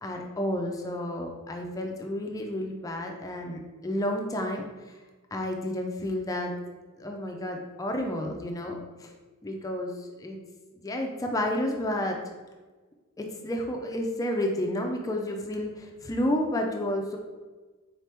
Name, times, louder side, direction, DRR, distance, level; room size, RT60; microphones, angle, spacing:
voice 1, 0.0-4.6 5.3-6.5 7.0-9.1 9.4-10.4 10.7-12.2 13.2-17.2, left 1 dB, 15° left, 2 dB, 0.3 m, -31 dB
3.9 x 2.9 x 3.3 m, 1.3 s
head